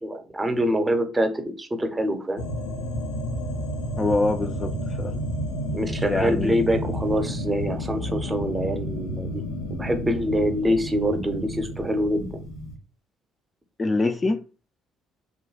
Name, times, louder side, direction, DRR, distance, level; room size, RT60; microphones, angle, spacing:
voice 1, 0.0-2.5 5.7-9.4 9.7-12.4, equal, 20° right, 0.7 m, -25 dB
sound 1, 2.4-12.8, equal, 75° left, 0.6 m, -31 dB
voice 2, 4.0-5.2 6.1-6.6 13.8-14.4, left 2 dB, 25° left, 0.4 m, -25 dB
3.0 x 2.2 x 3.3 m
hypercardioid pair, 50°, 0 cm